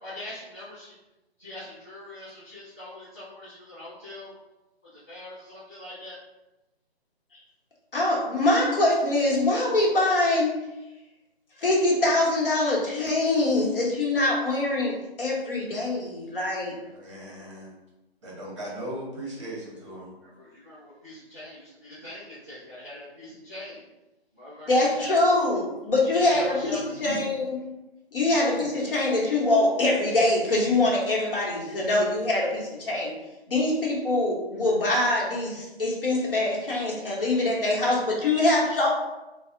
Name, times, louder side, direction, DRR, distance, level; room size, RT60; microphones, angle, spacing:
voice 1, 0.0-0.9 1.4-4.3 4.9-6.2 20.2-23.8 24.3-25.5 26.1-26.8, left 1 dB, 15° left, -15 dB, 0.4 m, -42 dB
voice 2, 7.9-10.6 11.6-16.8 24.7-27.6 28.1-33.1 33.5-38.9, left 2 dB, 60° left, -4 dB, 1.0 m, -24 dB
voice 3, 16.8-17.7 18.2-20.1, right 1 dB, 30° right, -5 dB, 0.7 m, -38 dB
3.1 x 2.0 x 2.6 m, 0.98 s
figure-of-eight pair, 145°, 31 cm